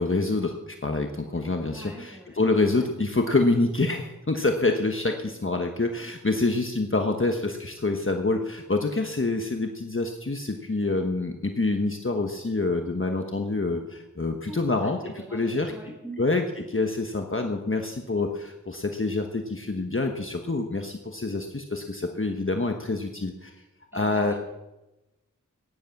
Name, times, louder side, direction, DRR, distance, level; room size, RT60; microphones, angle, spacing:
voice 1, 0.0-5.1 5.4-15.0 15.3-15.7 16.2-23.5 23.9-24.3, left 3 dB, 40° left, 4 dB, 1.2 m, -26 dB
voice 2, 1.7-2.5 2.7-2.9 5.0-5.3 14.5-16.2 23.9-24.4, right 1 dB, 5° right, -1 dB, 6.7 m, -43 dB
16.0 x 10.5 x 7.1 m, 1.0 s
wide cardioid pair, 55°, 32 cm